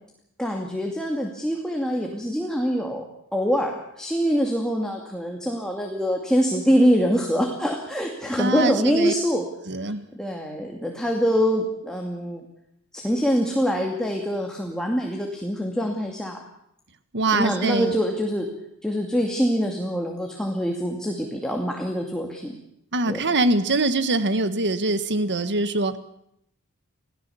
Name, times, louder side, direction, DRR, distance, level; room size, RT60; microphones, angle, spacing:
voice 1, 0.4-3.0 3.3-9.5 9.8-12.4 12.9-16.4 17.3-18.5 18.8-22.6 23.1-23.2, equal, 5° left, 1 dB, 2.4 m, -24 dB
voice 2, 8.4-9.1 9.7-10.0 17.1-17.9 22.9-26.0, right 2 dB, 55° right, 11 dB, 1.5 m, -23 dB
27.0 x 17.0 x 7.1 m, 0.77 s
head